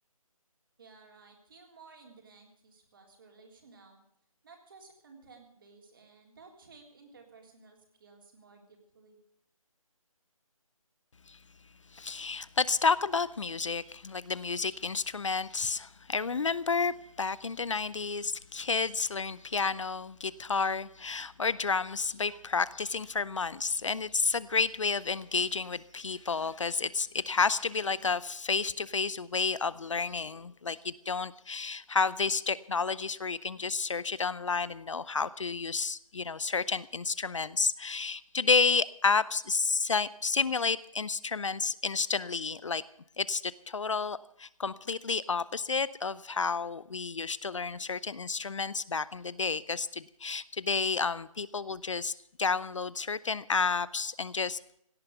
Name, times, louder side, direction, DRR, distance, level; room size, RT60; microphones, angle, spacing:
voice 1, 0.8-4.0 4.4-9.2, right 4 dB, 40° right, 2 dB, 3.6 m, -56 dB
voice 2, 11.9-42.8 43.2-54.8, left 4 dB, 55° left, 19 dB, 0.6 m, -31 dB
17.0 x 9.3 x 8.0 m, 0.70 s
figure-of-eight pair, 165°, 18 cm